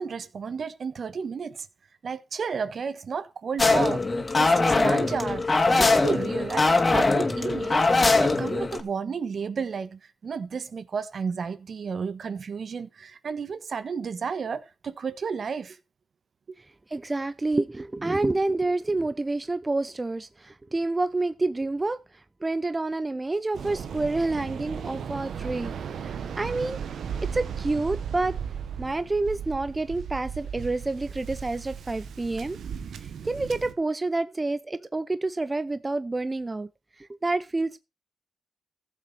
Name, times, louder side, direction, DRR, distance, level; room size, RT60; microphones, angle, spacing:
voice 1, 0.0-1.6 2.0-4.1 4.4-5.5 5.7-15.8, right 6 dB, 60° right, 1.3 m, -32 dB
sound 1, 3.6-8.8, left 3 dB, 35° left, 2.5 m, -22 dB
voice 2, 16.9-22.0 22.4-25.7 26.0-26.8 27.2-28.4 28.8-32.6 33.0-36.7 37.0-37.8, right 2 dB, 25° right, 0.7 m, -28 dB
Waves surf, 23.5-33.7, right 7 dB, 85° right, 1.4 m, -36 dB
14.5 x 7.6 x 4.2 m
cardioid pair, 70°, 0 cm